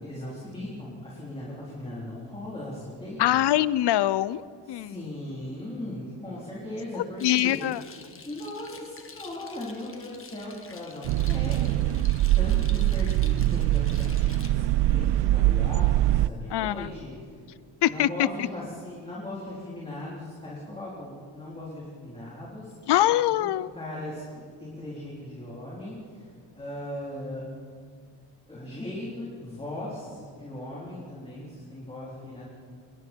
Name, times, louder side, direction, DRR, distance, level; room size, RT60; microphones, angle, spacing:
voice 1, 0.0-3.4 4.6-7.6 8.3-12.1 12.4-17.4 17.9-22.8 23.5-27.5 28.5-32.4, left 1 dB, 15° left, -6 dB, 3.9 m, -38 dB
voice 2, 3.2-5.0 6.9-7.8 16.5-16.9 17.8-18.5 22.9-23.7, left 13 dB, 65° left, 18 dB, 0.6 m, -24 dB
sound 1, 7.2-14.5, left 5 dB, 30° left, 1.8 m, -48 dB
sound 2, 11.0-16.3, right 15 dB, 75° right, 0.5 m, -23 dB
27.5 x 22.0 x 4.6 m, 2.2 s
wide cardioid pair, 180°, 43 cm